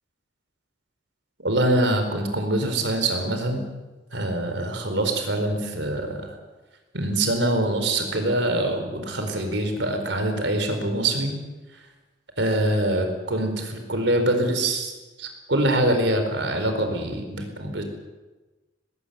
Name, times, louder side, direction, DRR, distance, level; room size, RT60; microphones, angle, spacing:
voice 1, 1.4-3.6 4.1-6.4 6.9-11.3 12.4-14.9 15.2-17.8, right 1 dB, 70° right, 6 dB, 4.5 m, -24 dB
19.5 x 17.5 x 9.4 m, 1.2 s
head